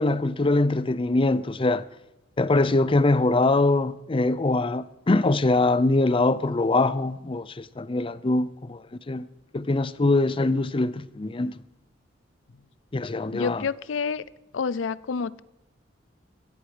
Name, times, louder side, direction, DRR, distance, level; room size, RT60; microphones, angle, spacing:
voice 1, 0.0-1.8 2.4-9.3 9.5-11.5 12.9-13.6, left 2 dB, 30° left, 0.5 m, -23 dB
voice 2, 13.3-14.2 14.5-15.4, left 5 dB, 85° left, 0.5 m, -28 dB
16.0 x 14.0 x 5.0 m
head